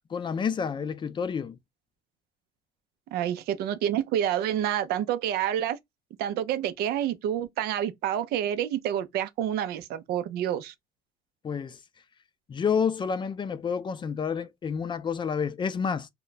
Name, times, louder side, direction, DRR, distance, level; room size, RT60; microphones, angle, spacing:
voice 1, 0.1-1.6 11.4-11.8 12.5-16.1, left 6 dB, 30° left, 0.4 m, -29 dB
voice 2, 3.1-5.8 6.2-10.7, right 10 dB, 85° right, 0.5 m, -28 dB
2.2 x 2.1 x 3.8 m
cardioid pair, 110°, 16 cm